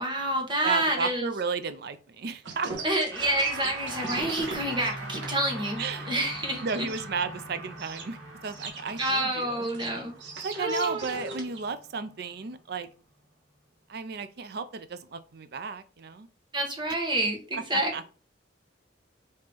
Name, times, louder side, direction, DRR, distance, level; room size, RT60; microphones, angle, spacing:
voice 1, 0.0-1.3 2.8-6.9 9.0-10.2 10.6-11.4 16.5-18.1, right 1 dB, 25° right, 1.1 m, -28 dB
voice 2, 0.6-2.7 5.8-6.1 6.6-9.7 10.4-12.9 13.9-16.3 17.5-18.0, right 5 dB, 55° right, 0.5 m, -34 dB
sound 1, 2.4-7.0 7.8-8.0 8.5-11.6, right 4 dB, 75° right, 1.1 m, -40 dB
sound 2, 3.1-12.6, right 1 dB, 90° right, 1.9 m, -41 dB
5.1 x 2.8 x 3.4 m
head